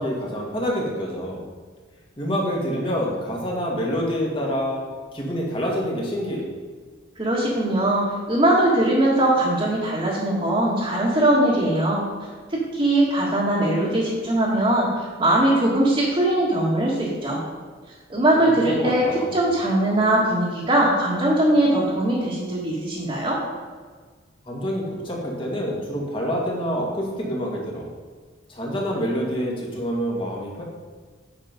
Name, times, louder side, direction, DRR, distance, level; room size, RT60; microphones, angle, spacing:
voice 1, 0.0-1.4 2.2-4.8 5.1-6.5 18.4-19.4 24.4-27.9 28.5-30.6, equal, 25° left, -2 dB, 1.9 m, -27 dB
voice 2, 7.2-12.0 12.5-17.4 18.1-19.0 19.3-23.4, right 1 dB, 25° right, -7 dB, 1.7 m, -21 dB
9.0 x 6.2 x 5.1 m, 1.5 s
head